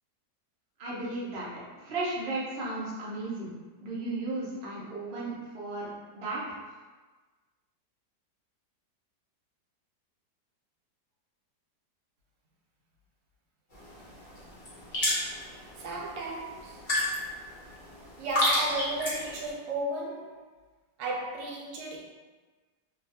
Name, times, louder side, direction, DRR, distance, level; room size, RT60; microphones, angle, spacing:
voice 1, 0.8-1.5 1.8-3.5 3.8-5.9 6.1-6.4, right 2 dB, 55° right, -6 dB, 0.6 m, -34 dB
sound 1, 13.7-19.5, left 1 dB, 35° left, 0.9 m, -32 dB
voice 2, 15.8-16.8 18.2-20.5 21.0-22.0, right 2 dB, 90° right, -2 dB, 1.3 m, -34 dB
3.0 x 2.2 x 2.7 m, 1.3 s
omnidirectional pair, 1.9 m